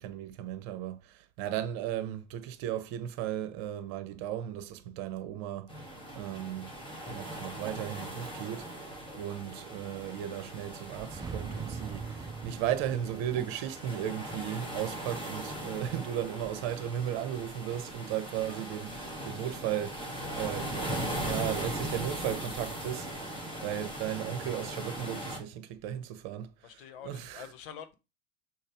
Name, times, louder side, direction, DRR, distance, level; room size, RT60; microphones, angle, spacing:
voice 1, 0.0-5.7 6.1-6.7 7.1-8.7 9.1-27.5, right 11 dB, 50° right, 0.9 m, -36 dB
sound 1, 5.7-25.4, right 1 dB, 15° left, 1.9 m, -39 dB
voice 2, 9.0-9.4 20.2-20.4 23.5-23.7 26.6-27.9, left 8 dB, 65° left, 0.9 m, -47 dB
sound 2, 10.7-15.5, right 5 dB, 15° right, 0.5 m, -44 dB
6.4 x 2.2 x 3.5 m
hypercardioid pair, 90°, 30 cm